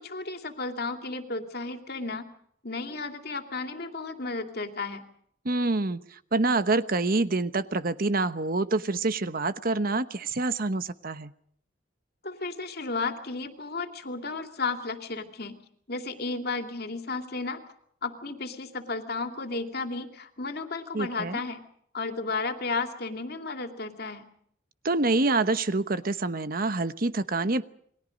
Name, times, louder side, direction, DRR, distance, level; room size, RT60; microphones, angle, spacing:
voice 1, 0.0-2.3 2.6-5.0 12.2-15.6 15.9-17.6 18.0-21.6 21.9-24.3, left 3 dB, 55° left, 5 dB, 2.7 m, -33 dB
voice 2, 5.4-11.3 20.9-21.4 24.8-27.6, right 3 dB, 50° right, 12 dB, 1.0 m, -26 dB
29.0 x 22.5 x 5.3 m, 0.65 s
head